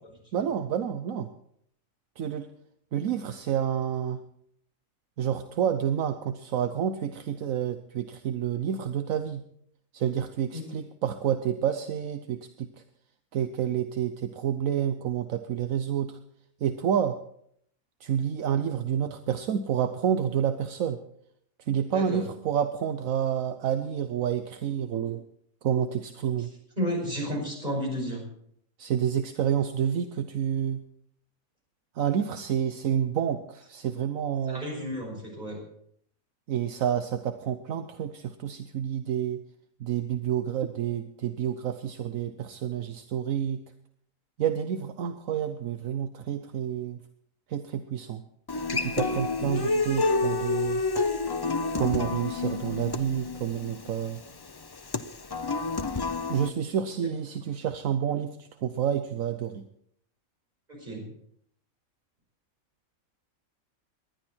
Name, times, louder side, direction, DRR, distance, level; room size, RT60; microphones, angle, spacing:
voice 1, 0.3-1.3 2.2-2.5 2.9-4.2 5.2-9.4 9.9-12.7 13.3-16.2 16.6-17.1 18.0-21.0 21.6-25.2 25.6-26.5 28.8-30.8 32.0-34.6 36.5-39.4 39.8-43.6 44.4-47.0 47.5-48.2 48.7-50.8 51.8-54.2 56.3-59.6, right 9 dB, 75° right, 9 dB, 1.2 m, -29 dB
voice 2, 21.9-22.2 26.8-28.2 34.5-35.6 49.6-49.7 60.7-61.0, equal, 30° right, -1 dB, 5.5 m, -32 dB
Human voice / Acoustic guitar, 48.5-56.5, left 3 dB, 35° left, 0.3 m, -29 dB
19.5 x 12.0 x 4.4 m, 0.68 s
omnidirectional pair, 1.4 m